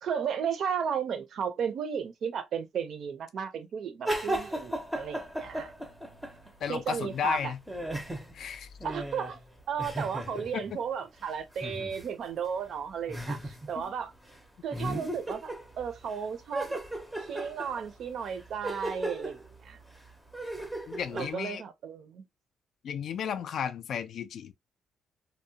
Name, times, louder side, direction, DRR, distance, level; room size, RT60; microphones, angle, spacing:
voice 1, 0.0-5.7 6.7-7.5 8.8-9.4 9.7-14.1 14.6-16.8 17.2-19.8 21.1-22.2, right 7 dB, 50° right, 0.5 m, -34 dB
sound 1, 4.0-6.7 7.0-10.8 11.6-12.1 12.4-12.5 13.1-13.9 14.2-14.4 14.7-16.2 16.5-21.3, right 1 dB, 5° right, 0.5 m, -36 dB
voice 2, 6.6-7.6 8.3-8.7 10.5-10.6 20.9-21.6 22.8-24.5, left 7 dB, 55° left, 0.3 m, -33 dB
2.7 x 2.0 x 2.7 m
cardioid pair, 165°, 0 cm